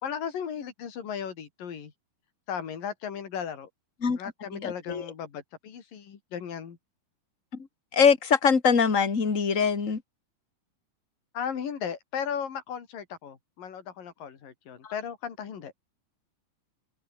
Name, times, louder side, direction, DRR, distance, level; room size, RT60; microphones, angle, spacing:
voice 1, 0.0-1.9 2.5-3.7 4.2-6.8 11.3-15.7, left 8 dB, 55° left, 4.5 m, -36 dB
voice 2, 4.0-5.1 7.9-10.0 14.8-14.9, left 6 dB, 25° left, 2.0 m, -23 dB
omnidirectional pair, 5.1 m